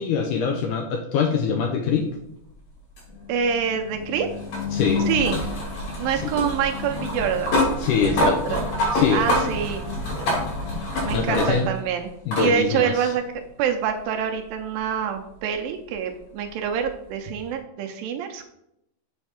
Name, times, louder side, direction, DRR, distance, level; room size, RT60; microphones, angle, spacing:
voice 1, 0.0-2.1 4.7-5.1 6.2-6.3 7.8-8.6 8.9-9.3 10.7-10.8 11.1-11.7 12.3-13.1, left 6 dB, 80° left, 2 dB, 1.9 m, -24 dB
sound 1, 3.0-11.8 12.3-12.5 13.8-13.9 16.8-16.9, left 1 dB, 65° left, 4.1 m, -26 dB
voice 2, 3.3-4.3 5.1-5.4 6.0-7.7 8.0-8.7 9.1-9.8 11.0-18.5, right 8 dB, 85° right, 5 dB, 2.3 m, -26 dB
7.3 x 3.5 x 5.8 m, 0.78 s
omnidirectional pair, 4.3 m